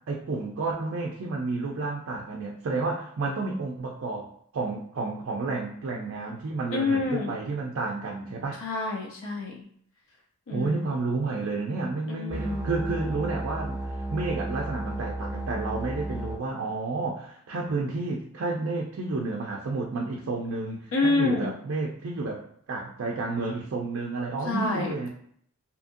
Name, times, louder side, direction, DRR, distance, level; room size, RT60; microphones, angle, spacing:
voice 1, 0.1-4.3 4.5-8.6 10.5-25.1, right 3 dB, 60° right, 0 dB, 0.4 m, -31 dB
voice 2, 6.7-7.4 8.6-9.6 10.5-10.9 12.1-12.7 20.9-21.5 24.5-24.9, left 3 dB, 60° left, 1 dB, 0.4 m, -28 dB
sound 1, 12.3-16.4, right 1 dB, 10° right, 0.7 m, -33 dB
2.7 x 2.5 x 2.5 m, 0.64 s
head